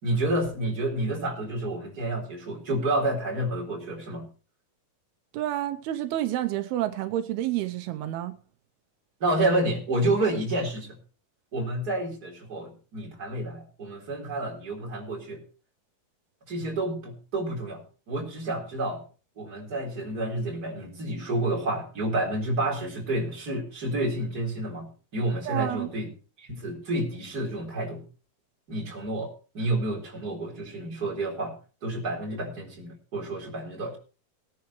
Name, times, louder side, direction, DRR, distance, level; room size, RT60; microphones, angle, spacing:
voice 1, 0.0-4.3 9.2-11.0 11.5-15.4 16.5-19.0 19.4-26.1 26.4-28.0 28.7-31.5 31.8-34.0, right 1 dB, 25° right, 4.1 m, -29 dB
voice 2, 5.3-8.4 25.5-25.9, right 13 dB, 85° right, 2.8 m, -29 dB
19.5 x 10.5 x 3.1 m
omnidirectional pair, 4.4 m